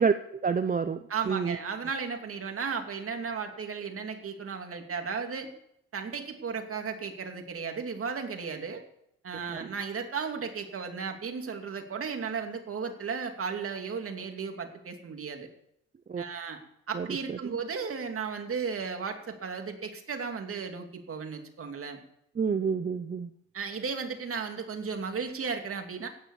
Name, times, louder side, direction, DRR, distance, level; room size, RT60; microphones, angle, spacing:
voice 1, 0.0-1.6 9.5-9.7 16.1-16.2 16.9-17.5 22.4-23.3, right 5 dB, 30° right, 11 dB, 0.7 m, -29 dB
voice 2, 1.1-5.5 5.9-8.8 9.2-15.5 16.2-16.6 16.9-22.0 23.5-26.1, right 5 dB, 45° right, 4 dB, 2.7 m, -35 dB
15.0 x 10.0 x 7.2 m, 0.77 s
cardioid pair, 90°, 30 cm